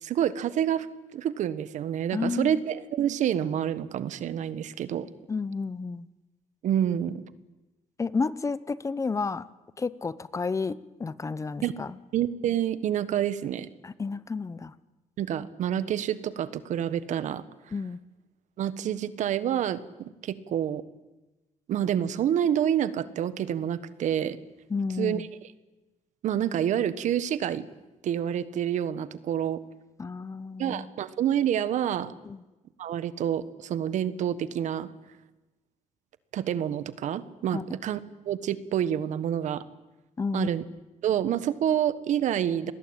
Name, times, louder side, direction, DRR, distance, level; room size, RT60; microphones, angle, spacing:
voice 1, 0.0-0.9 1.1-5.1 6.6-7.2 11.6-11.7 12.1-13.7 15.2-17.4 18.6-20.8 21.7-24.4 25.0-25.5 26.2-27.6 28.0-29.6 30.6-32.1 32.8-34.9 36.3-39.6 40.3-40.6 41.0-42.7, right 10 dB, 75° right, 15 dB, 1.4 m, -28 dB
voice 2, 2.1-2.6 5.3-6.1 8.0-9.4 9.8-11.9 13.8-14.7 17.7-18.0 24.7-25.2 30.0-30.9 32.2-32.4 37.5-37.6 40.2-40.5, left 4 dB, 25° left, 17 dB, 0.9 m, -31 dB
28.0 x 20.5 x 8.9 m, 1.1 s
cardioid pair, 120°, 13 cm